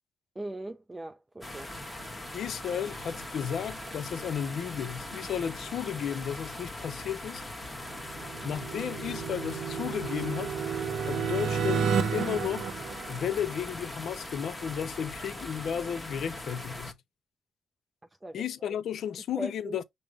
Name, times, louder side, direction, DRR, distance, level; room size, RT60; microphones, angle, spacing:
voice 1, 0.4-1.7 18.2-18.8 19.4-19.8, right 1 dB, 15° right, 0.4 m, -40 dB
sound 1, 1.4-16.9, left 1 dB, 10° left, 1.0 m, -41 dB
voice 2, 2.3-7.4 8.4-10.6 11.0-12.7 13.1-16.9 18.3-19.8, left 8 dB, 65° left, 0.5 m, -33 dB
sound 2, 7.9-13.7, right 6 dB, 70° right, 0.7 m, -32 dB
5.3 x 2.0 x 4.7 m
cardioid pair, 90°, 0 cm